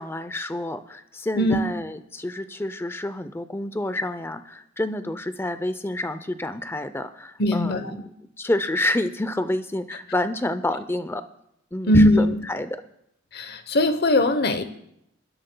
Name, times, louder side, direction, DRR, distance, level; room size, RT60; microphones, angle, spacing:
voice 1, 0.0-8.1 8.4-11.2 11.7-12.8, left 1 dB, 10° left, 11 dB, 0.5 m, -28 dB
voice 2, 7.4-8.0 11.9-12.5 13.3-14.6, left 1 dB, 55° left, 11 dB, 0.9 m, -20 dB
28.5 x 11.5 x 2.2 m, 0.78 s
head